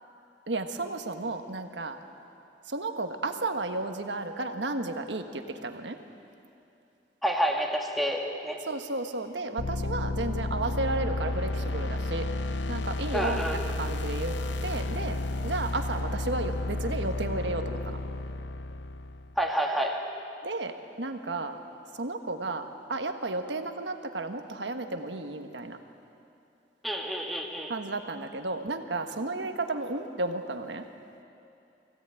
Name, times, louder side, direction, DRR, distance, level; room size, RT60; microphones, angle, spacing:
voice 1, 0.5-2.0 2.7-6.0 8.7-12.2 12.7-13.4 13.8-14.3 14.6-15.2 15.4-18.0 20.4-21.5 22.0-22.6 22.9-25.8 27.7-30.8, right 2 dB, 75° right, 6 dB, 1.5 m, -33 dB
voice 2, 7.2-8.6 13.1-13.7 19.4-20.0 26.8-27.7, equal, ahead, 1 dB, 2.0 m, -29 dB
sound 1, 9.6-19.4, left 2 dB, 70° left, 0.7 m, -32 dB
24.5 x 16.5 x 9.1 m, 2.7 s
head